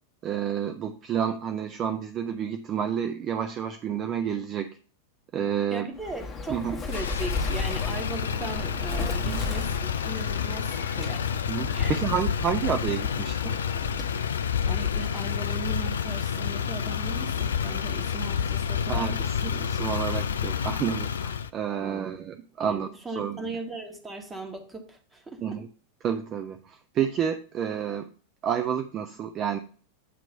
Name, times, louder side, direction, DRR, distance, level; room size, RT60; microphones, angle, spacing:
voice 1, 0.2-4.7 5.3-5.9 6.5-6.7 9.2-9.4 11.5-13.5 18.9-19.2 19.4-22.9 23.2-23.5 25.4-25.7 26.0-28.1 28.4-29.6, right 8 dB, 30° right, 7 dB, 0.4 m, -29 dB
voice 2, 5.7-11.3 11.7-12.0 14.7-19.3 21.8-22.2 22.6-25.6, right 2 dB, 10° right, 3 dB, 1.2 m, -38 dB
Bird, 6.0-14.2, left 4 dB, 20° left, 1.2 m, -35 dB
Motor vehicle (road), 6.9-21.5, left 7 dB, 65° left, 0.3 m, -29 dB
8.4 x 3.0 x 5.5 m, 0.41 s
figure-of-eight pair, 90°, 0 cm